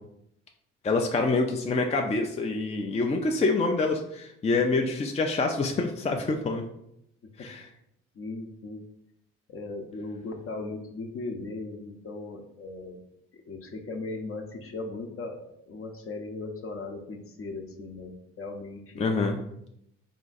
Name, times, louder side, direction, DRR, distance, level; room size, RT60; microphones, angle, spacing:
voice 1, 0.8-6.6 7.4-7.7 19.0-19.4, left 3 dB, 20° left, 3 dB, 0.4 m, -26 dB
voice 2, 7.2-7.8 8.1-8.8 9.5-13.0 13.3-19.2, left 3 dB, 50° left, 3 dB, 0.8 m, -38 dB
3.6 x 2.5 x 4.0 m, 0.78 s
supercardioid pair, 60°, 29 cm